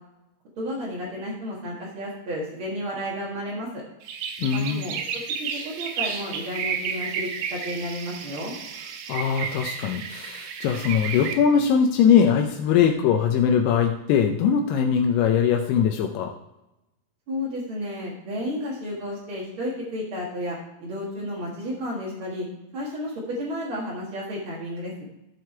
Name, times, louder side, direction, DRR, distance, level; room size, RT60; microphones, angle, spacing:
voice 1, 0.6-3.8 4.5-5.0 5.4-8.5 17.3-22.5 22.7-25.0, equal, 55° right, -5 dB, 1.5 m, -32 dB
sound 1, 4.0-11.3, right 7 dB, 80° right, 3.0 m, -32 dB
voice 2, 4.4-4.8 9.1-16.3, left 7 dB, 80° left, 4 dB, 2.4 m, -21 dB
14.0 x 4.9 x 4.5 m, 0.95 s
omnidirectional pair, 5.2 m